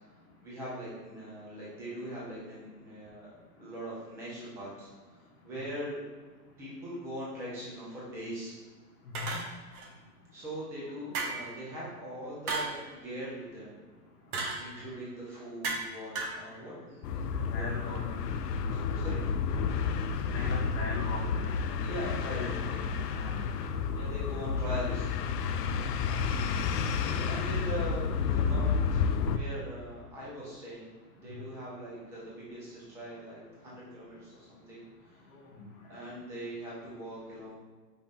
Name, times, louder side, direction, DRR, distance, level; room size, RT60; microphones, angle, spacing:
voice 1, 0.4-3.3 3.6-4.9 5.4-6.0 6.6-8.5 10.3-13.8 14.6-18.1 18.7-19.2 21.8-22.9 23.9-25.1 27.0-35.2 35.9-37.5, equal, 5° right, -7 dB, 0.4 m, -41 dB
sound 1, 9.1-9.9 11.1-11.6 12.5-12.8 14.3-14.6 15.6-16.4, right 3 dB, 60° right, 1.1 m, -34 dB
sound 2, 17.0-29.4, left 5 dB, 70° left, 0.5 m, -31 dB
voice 2, 17.5-18.0 20.3-21.5 22.4-22.8 23.1-23.4 26.0-26.3 35.3-35.7, left 4 dB, 35° left, -4 dB, 0.7 m, -39 dB
5.2 x 2.6 x 3.6 m, 1.4 s
hypercardioid pair, 135°, 50 cm